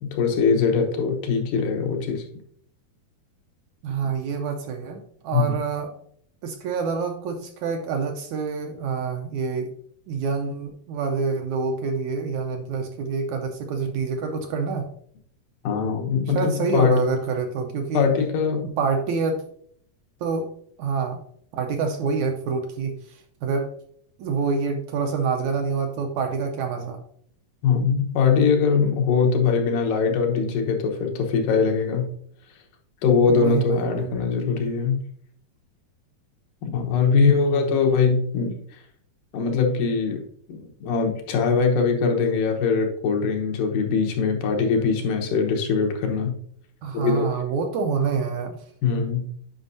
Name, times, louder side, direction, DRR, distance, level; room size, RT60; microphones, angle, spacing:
voice 1, 0.0-2.2 5.3-5.5 15.6-17.0 17.9-18.7 27.6-32.1 33.0-35.1 36.6-38.8 39.3-40.2 40.5-46.3 46.9-47.3 48.8-49.3, left 5 dB, 90° left, 2 dB, 2.7 m, -22 dB
voice 2, 3.8-5.9 6.4-9.7 10.1-14.9 16.3-18.1 18.8-19.4 20.2-20.5 20.8-21.2 21.5-23.7 24.2-27.0 33.3-34.2 37.2-37.7 46.8-48.6, right 5 dB, 80° right, 4 dB, 1.8 m, -27 dB
8.9 x 5.3 x 2.6 m, 0.64 s
omnidirectional pair, 3.7 m